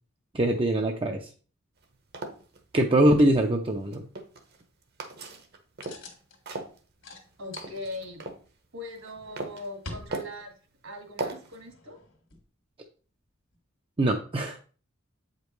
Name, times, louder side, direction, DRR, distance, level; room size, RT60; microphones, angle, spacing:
voice 1, 0.3-1.3 2.7-4.0 14.0-14.6, right 1 dB, 25° right, 3 dB, 0.5 m, -23 dB
sound 1, 1.8-2.9 3.7-4.6 5.0-6.1 6.5-8.4 8.9-9.7 10.1-10.4 11.2-11.6, right 2 dB, 50° right, 1.0 m, -38 dB
sound 2, 3.0-3.5 5.8-6.4 7.0-8.4 9.0-10.6 11.4-12.4 13.5-13.6, left 2 dB, 70° left, 1.7 m, -47 dB
voice 2, 7.4-8.2 8.7-10.6 10.8-12.0, left 1 dB, 70° right, 3 dB, 1.9 m, -40 dB
7.9 x 5.1 x 3.1 m, 0.39 s
head